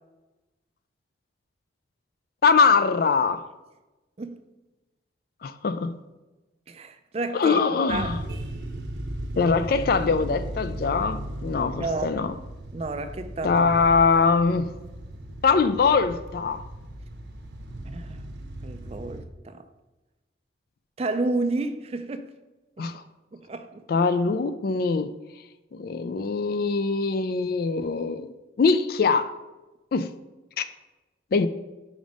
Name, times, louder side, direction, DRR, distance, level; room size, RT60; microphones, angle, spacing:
voice 1, 2.4-3.4 5.4-6.0 7.3-8.2 9.4-12.3 13.4-14.7 15.4-16.6 22.8-23.0 23.9-25.1 25.7-28.3 28.6-29.3 29.9-30.1 30.6-30.7 31.3-31.5, left 4 dB, 50° left, 0.3 m, -22 dB
voice 2, 6.7-7.6 7.9-8.2 11.8-12.2 12.7-13.6 17.9-18.2 18.6-19.6 21.0-22.3 22.8-22.9 23.3-23.8, right 2 dB, 30° right, 0.4 m, -31 dB
sound 1, 7.9-19.2, right 1 dB, 60° right, 0.9 m, -37 dB
5.1 x 5.0 x 5.2 m
head